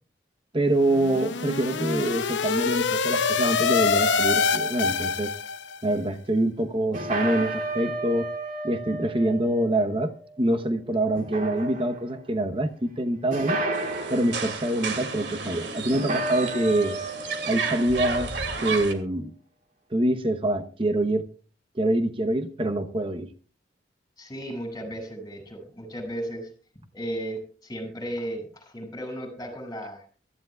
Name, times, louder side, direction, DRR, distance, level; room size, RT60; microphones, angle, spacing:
voice 1, 0.5-5.3 5.8-8.3 8.6-13.6 14.1-17.0 17.5-18.3 18.6-19.3 19.9-21.2 21.7-23.3, right 1 dB, 30° right, 0.9 m, -25 dB
sound 1, 0.8-5.8, left 5 dB, 85° left, 0.7 m, -25 dB
sound 2, 3.1-5.2 6.9-10.7 11.2-12.2 13.3-14.4 15.9-18.6, right 2 dB, 50° right, 2.7 m, -33 dB
sound 3, 13.7-18.9, right 4 dB, 75° right, 2.4 m, -32 dB
voice 2, 24.2-26.5 26.9-30.1, right 1 dB, 20° left, 5.7 m, -35 dB
23.5 x 14.0 x 2.3 m
head